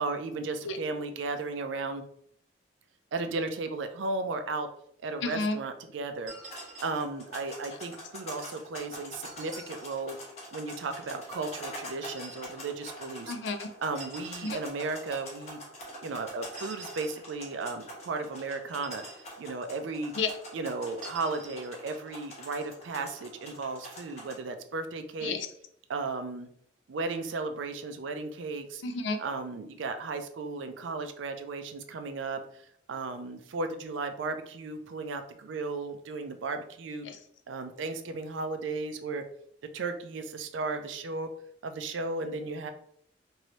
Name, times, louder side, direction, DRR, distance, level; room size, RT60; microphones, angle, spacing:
voice 1, 0.0-2.0 3.1-4.7 5.0-6.3 6.8-10.2 10.5-13.3 13.8-15.6 16.0-19.0 19.4-20.1 20.5-25.3 25.9-26.5 26.9-28.8 29.2-37.1 37.5-39.2 39.7-41.3 41.6-42.7, right 3 dB, 80° right, 8 dB, 0.4 m, -35 dB
voice 2, 5.2-5.6 13.3-13.7 14.4-14.6 20.2-20.3 25.2-25.5 28.8-29.2 37.1-37.2, left 3 dB, 70° left, 8 dB, 0.4 m, -31 dB
sound 1, 6.3-7.0 9.2-10.0 12.0-12.5 13.9-14.7 16.5-17.2 18.7-19.3 21.0-21.7, right 3 dB, 50° right, 1.5 m, -47 dB
sound 2, 6.4-24.3, equal, 35° left, 0.9 m, -45 dB
3.1 x 2.6 x 2.9 m, 0.67 s
head